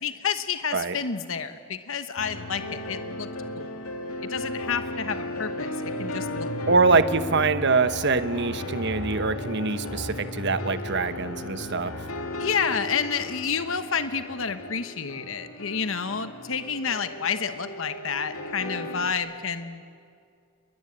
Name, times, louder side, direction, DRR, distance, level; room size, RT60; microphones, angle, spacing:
voice 1, 0.0-3.3 3.6-3.7 4.3-6.8 12.4-19.8, left 6 dB, 65° left, 10 dB, 1.1 m, -30 dB
sound 1, 2.2-19.1, left 1 dB, 80° left, 2.6 m, -35 dB
voice 2, 6.7-12.0, right 4 dB, 55° right, 11 dB, 1.1 m, -24 dB
29.5 x 21.5 x 8.8 m, 2.3 s
head